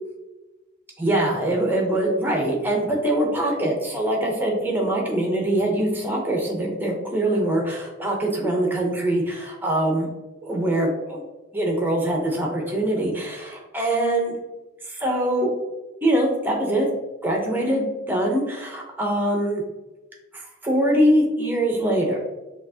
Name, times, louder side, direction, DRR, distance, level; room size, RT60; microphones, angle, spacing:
voice 1, 1.0-10.1 10.4-11.2 11.5-14.3 14.9-15.5 16.0-16.9 17.2-19.6 20.3-22.2, right 1 dB, 10° right, -1 dB, 0.6 m, -23 dB
5.6 x 2.4 x 2.7 m, 1.1 s
head